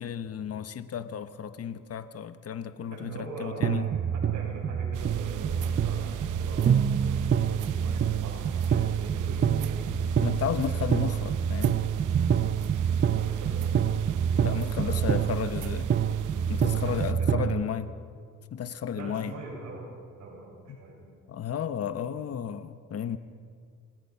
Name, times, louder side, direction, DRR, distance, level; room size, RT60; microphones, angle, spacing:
voice 1, 0.0-3.9 10.2-11.8 14.4-15.9 16.5-17.9 18.5-19.3 20.7-20.8 21.3-23.2, left 8 dB, 50° left, 11 dB, 1.2 m, -33 dB
voice 2, 2.9-9.9 10.6-10.8 13.1-13.8 14.3-15.3 16.6-17.7 18.9-19.9 20.2-21.0, right 3 dB, 65° right, -3 dB, 6.1 m, -42 dB
sound 1, 3.6-17.6, right 8 dB, 40° right, 0.8 m, -27 dB
sound 2, 4.9-17.1, right 12 dB, 90° right, 0.9 m, -38 dB
27.5 x 19.0 x 5.9 m, 2.2 s
cardioid pair, 90°, 30 cm